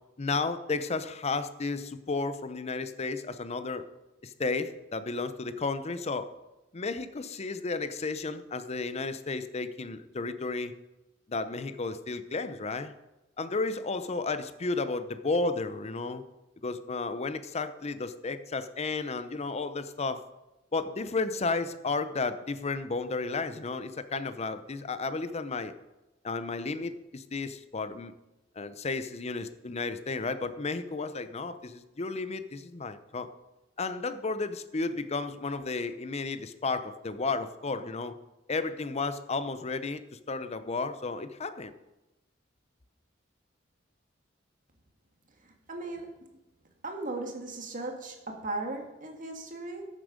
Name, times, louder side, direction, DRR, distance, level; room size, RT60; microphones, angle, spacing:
voice 1, 0.2-3.8 4.2-6.3 6.7-10.7 11.3-12.9 13.4-16.2 16.6-20.2 20.7-25.7 26.2-28.1 28.6-33.3 33.8-38.1 38.5-41.7, left 3 dB, 35° left, 12 dB, 0.7 m, -33 dB
voice 2, 45.7-46.1 46.8-49.8, right 2 dB, 45° right, 3 dB, 1.8 m, -37 dB
13.0 x 7.6 x 5.1 m, 0.99 s
head